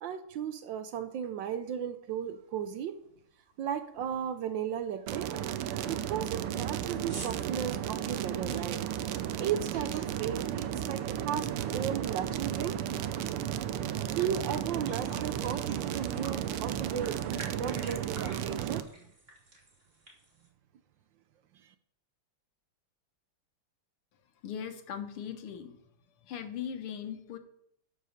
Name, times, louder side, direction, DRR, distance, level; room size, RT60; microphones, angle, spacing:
voice 1, 0.0-3.0 3.6-5.3 5.9-8.8 9.4-12.8 14.1-17.2 17.5-18.9 21.5-21.7, right 8 dB, 70° right, 10 dB, 1.2 m, -35 dB
sound 1, 2.3-2.4 2.9-3.2 3.5-3.6 4.0-4.3 4.7-4.8 5.3-5.4 5.7-11.7 12.0-13.3 13.7-13.8 14.0-20.5, right 2 dB, 25° right, 3.1 m, -50 dB
sound 2, 5.1-18.8, right 10 dB, 90° right, 1.6 m, -34 dB
voice 2, 24.4-25.8 26.2-27.4, left 8 dB, 80° left, 7 dB, 2.0 m, -39 dB
12.0 x 5.6 x 6.5 m, 0.71 s
omnidirectional pair, 2.4 m